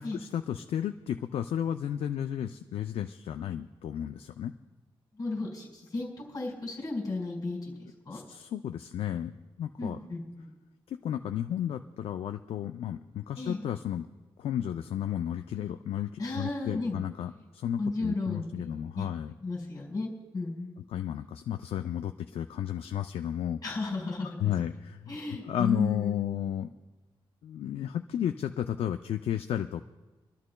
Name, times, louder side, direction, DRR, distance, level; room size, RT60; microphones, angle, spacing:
voice 1, 0.0-4.5 8.1-9.3 9.6-10.0 11.0-14.1 14.4-19.3 20.9-23.7 24.4-25.2 25.4-26.7 27.4-29.8, left 10 dB, 85° left, 7 dB, 0.4 m, -33 dB
voice 2, 5.2-8.2 9.8-10.5 13.3-13.6 16.2-17.0 17.8-19.1 19.4-20.8 23.6-24.5 25.1-26.5, left 3 dB, 40° left, -2 dB, 4.5 m, -34 dB
28.5 x 12.5 x 2.2 m, 1.2 s
wide cardioid pair, 140°, 10 cm